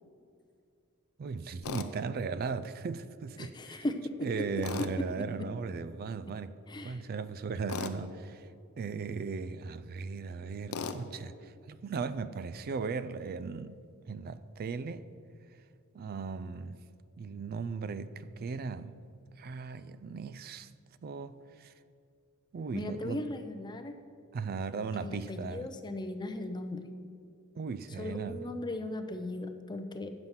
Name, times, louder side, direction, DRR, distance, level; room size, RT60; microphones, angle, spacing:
voice 1, 1.2-3.8 4.2-6.6 6.8-8.5 8.8-15.1 15.9-16.8 17.2-19.0 19.4-20.7 21.0-21.7 22.5-23.3 24.3-25.7 27.6-28.4, right 5 dB, 45° right, 0.3 m, -37 dB
Tools, 1.6-1.9 4.6-5.0 7.7-8.0 10.7-11.0, left 5 dB, 70° left, 0.5 m, -36 dB
voice 2, 3.4-4.3 4.8-4.9 5.4-5.5 6.7-7.0 22.7-23.9 25.0-26.8 28.0-30.1, left 1 dB, 20° left, 0.5 m, -37 dB
7.9 x 5.7 x 7.2 m
head